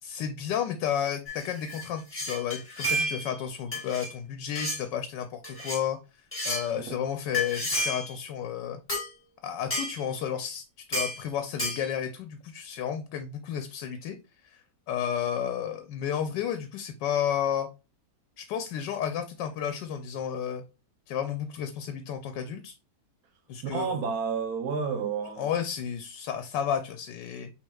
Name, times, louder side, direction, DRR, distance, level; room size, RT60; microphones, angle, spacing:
voice 1, 0.0-6.0 6.4-8.8 9.4-14.1 14.4-14.6 14.9-17.7 18.4-20.6 21.1-22.7 23.5-24.0 25.4-27.5, left 8 dB, 85° left, 1.2 m, -32 dB
metal coffee cup clangs, 1.3-3.4 3.7-4.1 4.5-4.8 5.4-5.8 6.3-6.7 7.3-8.2 8.9-9.1 9.7-10.0 10.9-11.2 11.6-11.9, equal, 5° left, 1.6 m, -31 dB
voice 2, 23.6-25.5, right 5 dB, 65° right, 1.1 m, -31 dB
6.3 x 3.3 x 2.2 m
omnidirectional pair, 1.9 m